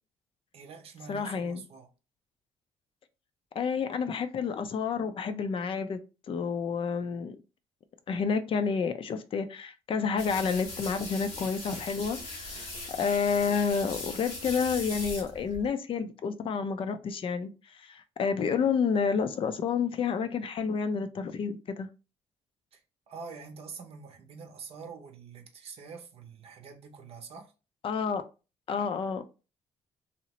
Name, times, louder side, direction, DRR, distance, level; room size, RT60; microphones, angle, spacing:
voice 1, 0.5-1.9 22.7-22.8 23.1-27.5, right 5 dB, 60° right, 0.6 m, -45 dB
voice 2, 1.1-1.6 3.5-6.0 6.3-7.4 8.1-21.9 27.8-28.2 28.7-29.2, left 6 dB, 50° left, 0.4 m, -30 dB
sound 1, 10.2-15.7, left 2 dB, 90° left, 1.3 m, -40 dB
2.8 x 2.0 x 2.8 m
supercardioid pair, 75°, 12 cm